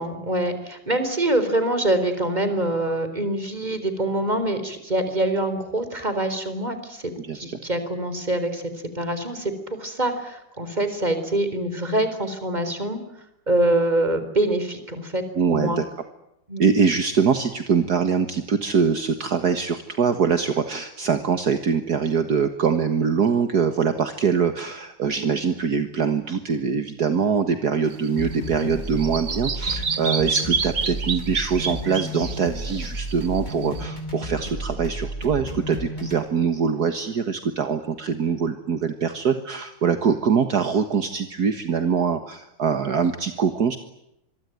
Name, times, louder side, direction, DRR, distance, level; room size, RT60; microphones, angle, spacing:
voice 1, 0.0-8.6 8.9-9.5 9.8-13.0 13.5-15.8 16.5-16.7, right 1 dB, 20° right, 9 dB, 4.3 m, -25 dB
voice 2, 7.2-7.5 15.4-15.9 16.6-43.8, right 6 dB, 60° right, 8 dB, 2.0 m, -23 dB
Bird vocalization bird call bird song, 27.9-33.8, right 5 dB, 35° right, 1.6 m, -29 dB
sound 1, 28.2-36.2, equal, 25° left, 6.7 m, -32 dB
26.5 x 23.0 x 9.4 m, 0.83 s
omnidirectional pair, 2.0 m